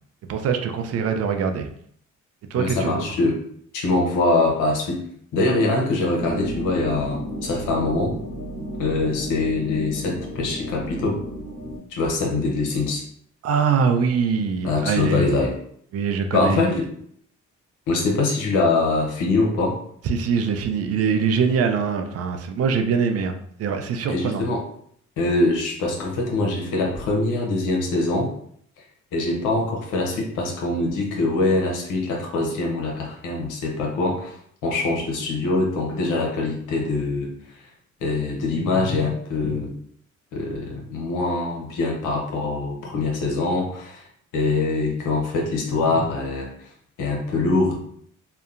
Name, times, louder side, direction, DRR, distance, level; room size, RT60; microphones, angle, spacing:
voice 1, 0.3-1.7 2.5-3.0 13.4-15.4 15.9-16.8 20.0-24.4, right 6 dB, 55° right, 6 dB, 0.4 m, -23 dB
voice 2, 2.5-3.4 3.7-5.0 5.3-8.2 8.8-11.2 11.9-13.0 14.6-15.5 16.3-16.9 17.9-19.8 24.1-24.6 25.2-28.3 29.1-34.3 34.6-37.3 38.0-39.7 40.3-44.0 44.3-46.5 47.0-47.8, left 2 dB, 90° left, 0 dB, 0.8 m, -23 dB
sound 1, 6.2-11.8, equal, 90° right, 0.8 m, -33 dB
2.8 x 2.1 x 2.4 m, 0.65 s
cardioid pair, 90°, 30 cm